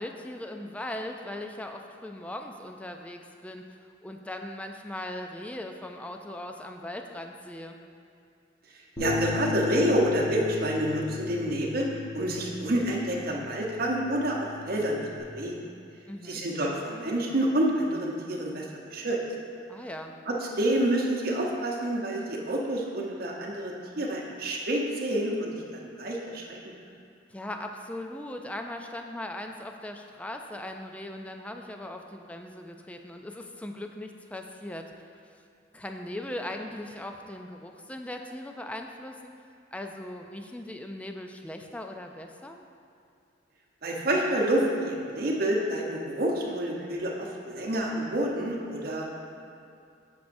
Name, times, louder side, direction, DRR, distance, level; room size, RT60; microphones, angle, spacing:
voice 1, 0.0-7.8 16.1-16.4 19.7-20.2 27.3-35.2 35.7-39.3 39.7-42.6, left 1 dB, 5° left, 4 dB, 0.3 m, -39 dB
Bass guitar, 9.0-15.2, left 5 dB, 25° left, 1.3 m, -36 dB
voice 2, 9.0-11.9 12.1-15.7 16.2-18.7 18.9-19.2 20.3-26.6 43.8-49.1, right 1 dB, 55° right, -2 dB, 0.9 m, -28 dB
8.4 x 6.1 x 2.6 m, 2.5 s
head